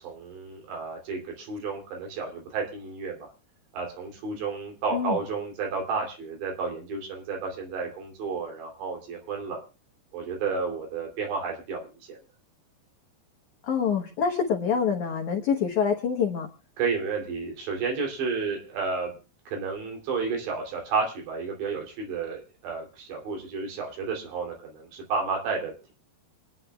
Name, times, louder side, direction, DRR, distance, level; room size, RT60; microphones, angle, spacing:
voice 1, 0.0-3.3 3.7-9.6 10.1-11.8 12.1-12.2 16.8-19.1 19.5-25.9, right 4 dB, 80° right, 1 dB, 5.1 m, -31 dB
voice 2, 13.6-16.5, left 6 dB, 80° left, 2 dB, 1.7 m, -26 dB
26.0 x 9.6 x 2.3 m, 0.33 s
omnidirectional pair, 4.9 m